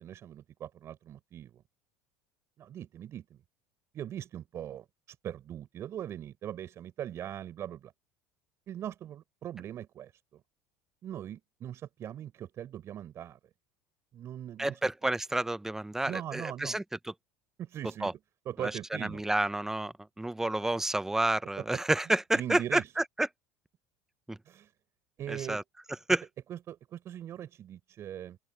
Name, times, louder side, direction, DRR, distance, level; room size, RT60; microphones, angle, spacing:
voice 1, 0.0-1.6 2.6-3.4 3.9-7.9 8.7-10.4 11.0-13.4 14.1-14.9 16.1-16.8 17.6-18.1 18.4-19.2 21.6-21.8 22.3-22.9 24.4-24.7 25.2-25.6 26.5-28.4, right 10 dB, 45° right, 6.5 m, -41 dB
voice 2, 14.6-17.1 18.0-18.1 18.6-18.7 19.0-23.3 24.3-24.4 25.3-25.6 26.1-26.2, right 1 dB, 5° right, 0.7 m, -30 dB
open air
supercardioid pair, 105°, 6 cm